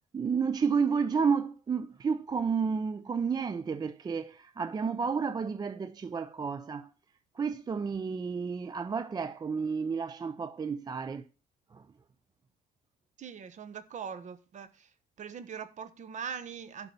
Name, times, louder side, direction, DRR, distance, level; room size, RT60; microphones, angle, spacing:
voice 1, 0.1-6.9 7.3-11.3 11.7-11.9, right 5 dB, 25° right, 0.4 m, -31 dB
voice 2, 13.2-14.9 15.2-16.9, right 7 dB, 45° right, 1.2 m, -41 dB
11.5 x 4.1 x 6.8 m
cardioid pair, 110°, 17 cm